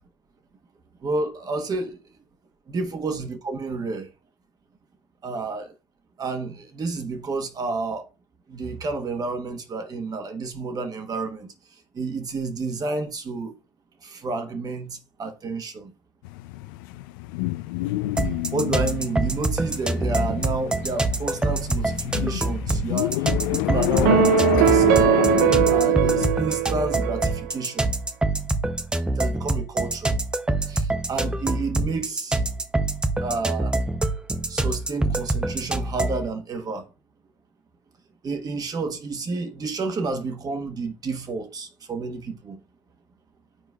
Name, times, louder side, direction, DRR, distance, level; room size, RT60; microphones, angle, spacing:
voice 1, 1.0-2.0 2.7-4.1 5.2-5.7 6.2-8.1 8.5-11.5 11.9-13.6 14.0-15.9 18.5-25.2 25.7-27.9 29.1-30.2 30.7-32.4 33.2-33.8 34.5-36.9 38.2-42.6, right 3 dB, 35° right, 1.2 m, -30 dB
sound 1, 16.2-26.3, left 17 dB, 75° left, 0.4 m, -28 dB
sound 2, 18.2-36.3, right 2 dB, 10° right, 0.6 m, -25 dB
sound 3, 24.0-27.5, right 13 dB, 75° right, 0.4 m, -20 dB
11.5 x 4.5 x 2.3 m
hypercardioid pair, 80°, 11 cm